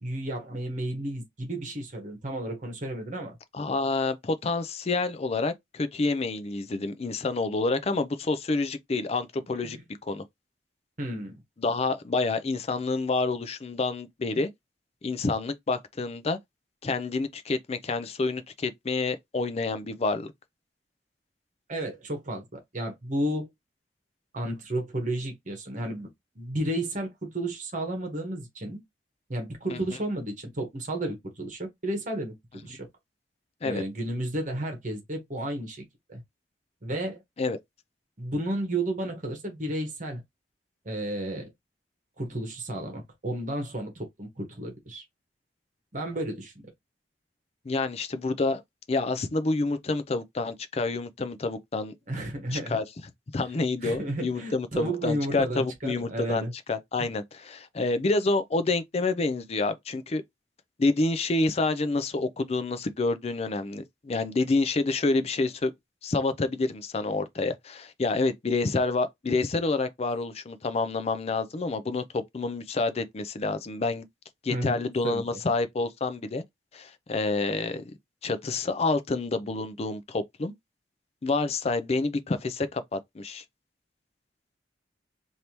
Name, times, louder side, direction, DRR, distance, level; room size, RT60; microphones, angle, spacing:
voice 1, 0.0-3.4 9.6-9.8 11.0-11.4 21.7-23.5 24.3-26.1 26.3-28.8 29.3-32.9 33.6-35.8 36.1-36.2 36.8-37.2 38.2-40.2 40.8-41.5 42.2-45.0 45.9-46.5 52.1-52.8 53.8-56.5 74.5-75.4, right 1 dB, 45° right, 1.2 m, -32 dB
voice 2, 3.5-9.8 10.0-10.2 11.6-14.5 15.0-16.4 16.8-20.3 29.7-29.8 33.6-33.8 37.4-37.6 47.7-48.6 48.9-51.9 52.5-52.8 53.3-60.2 60.8-65.7 66.0-74.1 74.4-76.4 76.7-77.8 78.2-80.5 81.2-83.4, left 3 dB, 35° left, 0.4 m, -28 dB
3.4 x 2.7 x 2.9 m
head